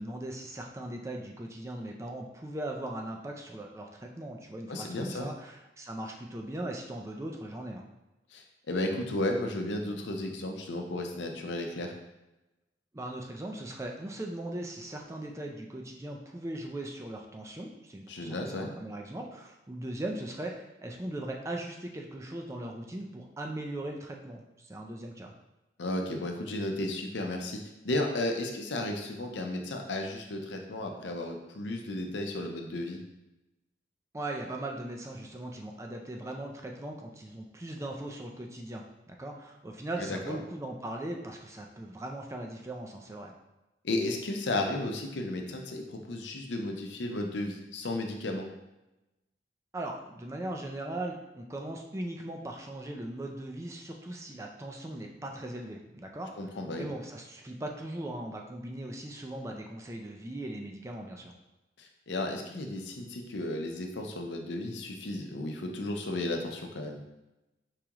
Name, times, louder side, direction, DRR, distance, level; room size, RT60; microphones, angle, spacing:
voice 1, 0.0-7.9 12.9-25.3 34.1-43.3 49.7-56.5 56.8-61.4, right 1 dB, 15° right, 1 dB, 0.4 m, -39 dB
voice 2, 4.7-5.3 8.3-11.9 18.1-18.7 25.8-27.6 27.8-33.0 40.0-40.4 43.8-48.5 56.4-56.9 61.8-67.0, left 1 dB, 85° left, 3 dB, 0.7 m, -34 dB
4.8 x 3.6 x 3.0 m, 0.97 s
head